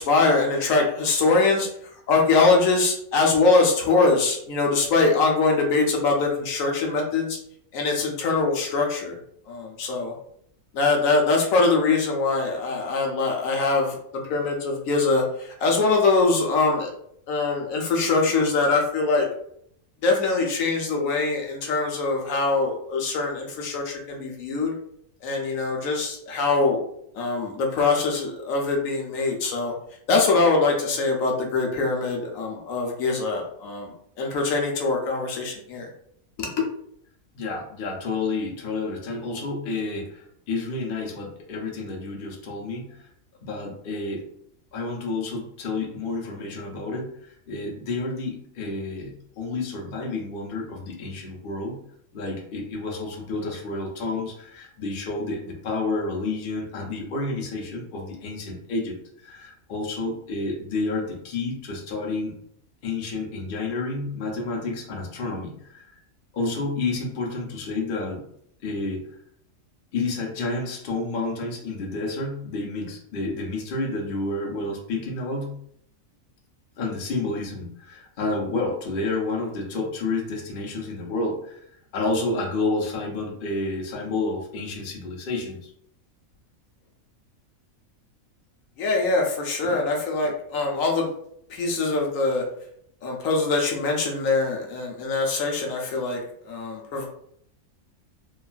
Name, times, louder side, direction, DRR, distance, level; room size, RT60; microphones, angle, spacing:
voice 1, 0.0-1.7 2.1-7.4 7.7-9.2 9.5-10.1 10.7-16.9 17.3-19.2 20.0-24.7 25.2-26.8 27.1-29.7 30.1-35.9 36.4-36.6 88.8-91.1 91.5-92.4 93.0-96.2 96.5-97.1, left 3 dB, 75° left, 1 dB, 1.0 m, -23 dB
voice 2, 37.3-43.1 43.4-44.2 44.7-51.8 52.1-62.4 62.8-65.9 66.3-68.2 68.6-69.1 69.9-75.6 76.8-81.6 81.9-85.7, left 3 dB, 50° left, -2 dB, 0.7 m, -30 dB
2.9 x 2.4 x 2.3 m, 0.68 s
omnidirectional pair, 1.5 m